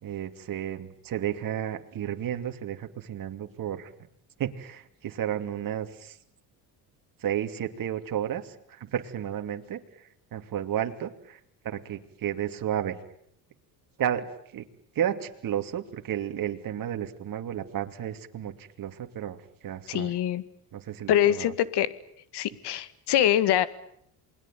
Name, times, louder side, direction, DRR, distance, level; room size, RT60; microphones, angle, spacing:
voice 1, 0.0-3.9 4.4-6.2 7.2-13.0 14.0-14.6 14.9-20.1 20.7-21.5, right 10 dB, 50° right, 6 dB, 2.7 m, -32 dB
voice 2, 19.9-20.4 21.1-21.9 22.3-23.7, left 11 dB, 70° left, 15 dB, 2.0 m, -24 dB
28.5 x 21.0 x 9.2 m, 0.70 s
cardioid pair, 105°, 43 cm